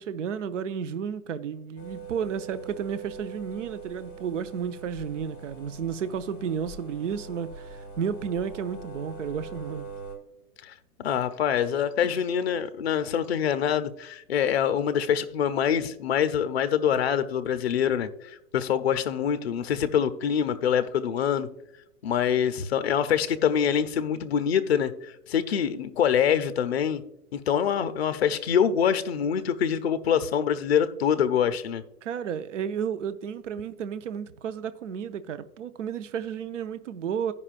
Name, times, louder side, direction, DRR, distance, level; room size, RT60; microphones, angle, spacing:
voice 1, 0.0-9.9 32.0-37.3, right 7 dB, 55° right, 0.6 m, -32 dB
sound 1, 1.8-10.2, right 4 dB, 15° left, 0.9 m, -42 dB
voice 2, 11.0-21.5 22.0-27.0 27.3-31.8, left 8 dB, 45° left, 0.5 m, -25 dB
16.0 x 5.4 x 2.4 m
hypercardioid pair, 175°, 46 cm